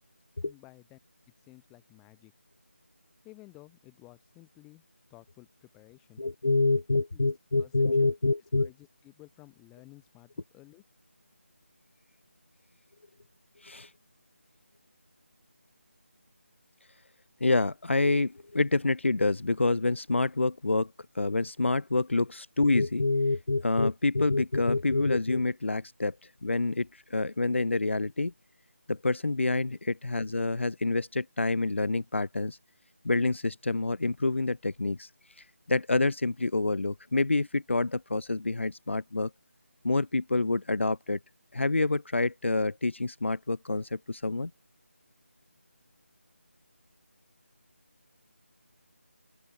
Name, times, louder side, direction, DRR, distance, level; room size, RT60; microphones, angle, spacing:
voice 1, 0.4-1.0 1.4-2.3 3.2-4.8 5.1-6.2 6.7-6.8 7.1-7.3 7.6-7.7 8.0-8.1 8.6-10.8, left 22 dB, 5° left, 5.7 m, -54 dB
voice 2, 6.2-8.7 13.6-13.9 17.4-26.1 26.4-28.3 28.9-32.6 33.0-35.1 35.7-39.3 39.8-41.2 41.5-44.5, left 3 dB, 60° left, 0.8 m, -27 dB
open air
figure-of-eight pair, 175°, 7 cm